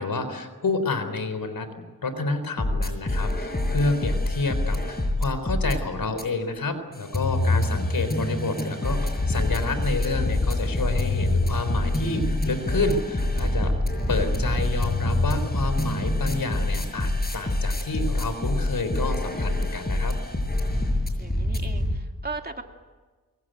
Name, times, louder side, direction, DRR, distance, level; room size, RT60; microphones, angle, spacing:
voice 1, 0.0-1.7 2.0-13.7 14.1-20.2, left 3 dB, 80° left, 10 dB, 4.0 m, -29 dB
sound 1, 2.6-5.7 6.2-6.3 6.9-22.0, left 1 dB, 25° left, 6.5 m, -26 dB
voice 2, 21.2-22.6, right 3 dB, 30° right, 4 dB, 2.7 m, -38 dB
25.0 x 24.0 x 9.3 m, 1.3 s
wide cardioid pair, 75°, 34 cm